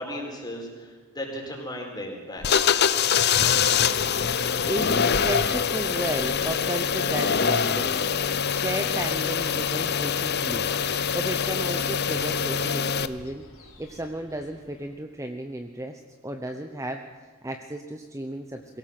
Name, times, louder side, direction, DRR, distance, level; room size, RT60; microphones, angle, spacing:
voice 1, 0.0-2.7, left 1 dB, 20° left, 0 dB, 4.5 m, -36 dB
sound 1, 2.4-13.1, left 7 dB, 45° left, 0.7 m, -24 dB
sound 2, 4.3-14.9, left 1 dB, 65° left, 4.4 m, -47 dB
voice 2, 4.7-18.8, right 1 dB, 15° right, 5 dB, 0.9 m, -34 dB
22.0 x 17.0 x 7.7 m, 1.3 s
head